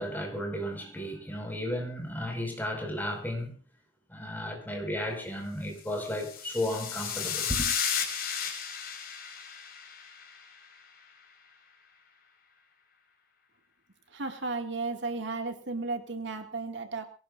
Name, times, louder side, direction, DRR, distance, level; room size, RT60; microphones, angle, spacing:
voice 1, 0.0-3.5 4.1-7.7, left 1 dB, 10° left, 5.5 m, -34 dB
sound 1, 6.0-10.5, left 7 dB, 50° left, 4.6 m, -33 dB
voice 2, 14.1-17.1, right 3 dB, 60° right, 2.2 m, -34 dB
23.5 x 18.0 x 2.6 m
head